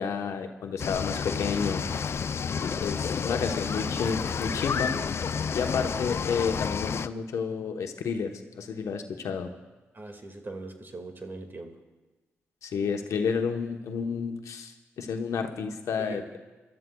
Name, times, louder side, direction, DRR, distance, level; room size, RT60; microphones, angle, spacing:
voice 1, 0.0-1.8 2.5-4.9 5.5-9.5 12.6-16.4, left 6 dB, 75° left, 5 dB, 1.0 m, -31 dB
sound 1, 0.8-7.1, left 6 dB, 55° left, 0.4 m, -30 dB
voice 2, 9.9-11.7 16.0-16.4, right 2 dB, 40° right, 5 dB, 2.0 m, -41 dB
26.0 x 12.5 x 2.3 m, 1.2 s
supercardioid pair, 50°, 5 cm